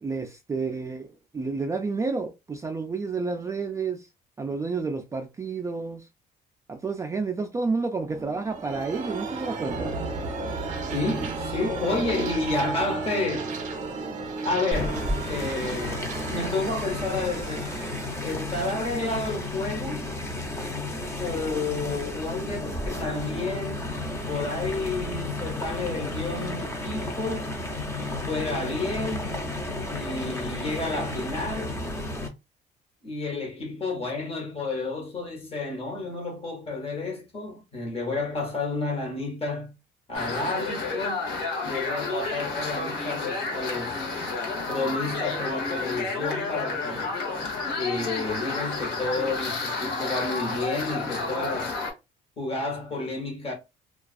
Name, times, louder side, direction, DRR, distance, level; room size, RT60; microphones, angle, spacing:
voice 1, 0.0-4.1 4.4-6.0 6.7-9.9, right 4 dB, 20° right, 0.3 m, -30 dB
sound 1, 8.1-19.6, right 3 dB, 45° right, 0.8 m, -34 dB
voice 2, 10.9-13.5 14.4-17.7 18.2-20.1 21.2-23.9 24.3-27.7 28.0-29.4 29.9-31.8 33.0-39.7 40.1-41.3 41.6-44.0 44.7-47.1 47.8-51.7 52.4-53.5, left 2 dB, 35° left, 1.0 m, -31 dB
sound 2, 14.7-32.3, left 2 dB, 15° left, 0.6 m, -32 dB
sound 3, 40.1-51.9, left 3 dB, 85° left, 0.9 m, -30 dB
2.3 x 2.3 x 2.4 m
cardioid pair, 110°, 17 cm